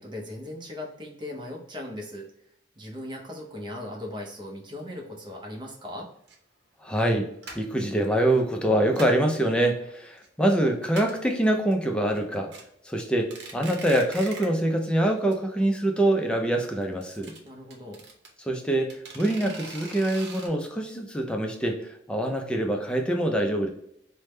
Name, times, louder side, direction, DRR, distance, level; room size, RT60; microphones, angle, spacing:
voice 1, 0.0-2.3 2.8-6.1 17.4-18.0, left 1 dB, 25° right, 0 dB, 0.7 m, -38 dB
sound 1, 6.3-6.4 6.9-7.1 7.4-7.8 8.5-9.3 9.7-10.3 10.5-10.6 10.8-11.3 11.7-11.8 12.2-12.6 13.1-14.6 14.9-15.0 15.3-15.4 15.7-15.8 16.8-18.3 18.9-20.5, right 3 dB, 80° right, 0.8 m, -41 dB
voice 2, 6.8-7.3 7.6-12.5 12.9-17.3 18.4-23.7, right 1 dB, 5° left, 2 dB, 0.5 m, -25 dB
3.3 x 2.1 x 3.1 m, 0.73 s
head